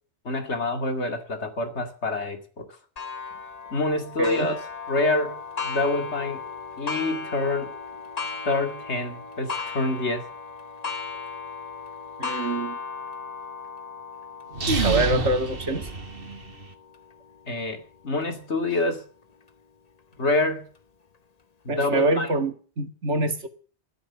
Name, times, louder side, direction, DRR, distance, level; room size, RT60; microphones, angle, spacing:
voice 1, 0.2-2.7 3.7-4.5 4.9-5.4 5.6-6.4 6.8-7.7 8.4-10.2 17.5-19.0 20.2-20.7 21.6-22.3, left 2 dB, 75° left, 2.5 m, -26 dB
Clock, 3.0-18.3 18.9-19.0 19.5-19.6 20.6-20.7, left 5 dB, 35° left, 1.1 m, -36 dB
voice 2, 12.2-12.8 14.8-15.9 21.7-23.5, right 2 dB, 80° right, 2.2 m, -25 dB
sound 1, 14.5-16.7, right 3 dB, 55° right, 1.8 m, -27 dB
13.5 x 12.5 x 6.9 m
omnidirectional pair, 1.2 m